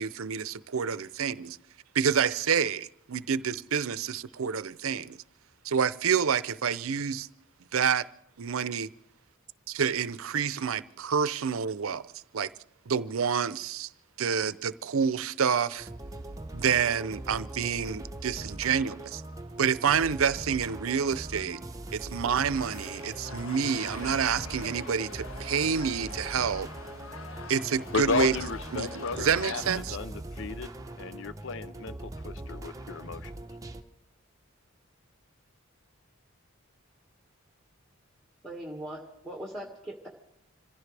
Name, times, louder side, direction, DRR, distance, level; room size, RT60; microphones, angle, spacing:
voice 1, 0.0-1.6 1.9-5.2 5.6-7.3 7.7-8.0 8.4-8.9 9.7-12.0 12.3-12.5 12.9-13.9 14.2-15.9 16.5-19.2 19.6-21.6 21.9-26.7 27.5-28.3 28.7-30.0, right 7 dB, 80° right, 0.6 m, -28 dB
sound 1, 15.8-33.8, right 1 dB, 15° right, 0.8 m, -41 dB
sound 2, 22.5-29.8, left 3 dB, 80° left, 1.6 m, -44 dB
voice 2, 27.9-30.7 31.0-33.3, left 4 dB, 60° left, 0.6 m, -33 dB
voice 3, 38.4-40.1, right 1 dB, ahead, 1.8 m, -40 dB
26.5 x 15.5 x 3.4 m
head